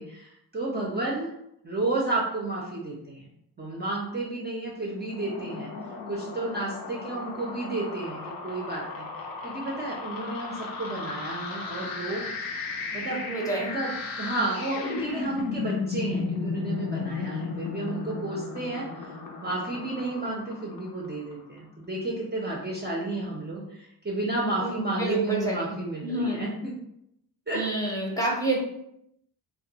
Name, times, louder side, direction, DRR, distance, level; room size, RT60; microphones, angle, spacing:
voice 1, 0.0-1.3 1.6-3.3 3.6-5.7 6.1-9.1 9.4-12.6 12.9-13.2 13.6-13.9 14.2-19.1 19.4-26.7 27.5-27.6, right 2 dB, 25° right, -4 dB, 0.5 m, -32 dB
sound 1, 5.0-21.3, left 4 dB, 60° left, 0.6 m, -35 dB
voice 2, 13.3-13.7 24.6-26.4 27.5-28.6, right 2 dB, 10° left, -4 dB, 0.7 m, -29 dB
2.2 x 2.2 x 2.7 m, 0.77 s
cardioid pair, 95°, 40 cm